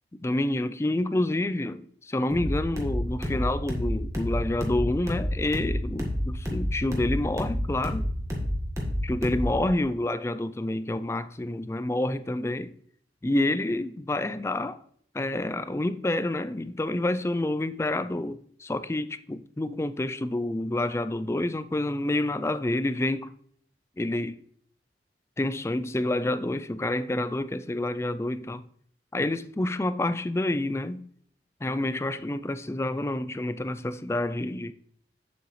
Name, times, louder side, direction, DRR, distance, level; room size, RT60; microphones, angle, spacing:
voice 1, 0.2-8.1 9.0-12.7 13.2-14.8 15.1-23.3 24.0-24.4 25.4-28.7 29.1-31.0 31.6-34.7, left 1 dB, 15° left, 0.3 m, -28 dB
sound 1, 2.3-9.7, equal, 20° right, 1.6 m, -30 dB
8.3 x 7.6 x 3.2 m
head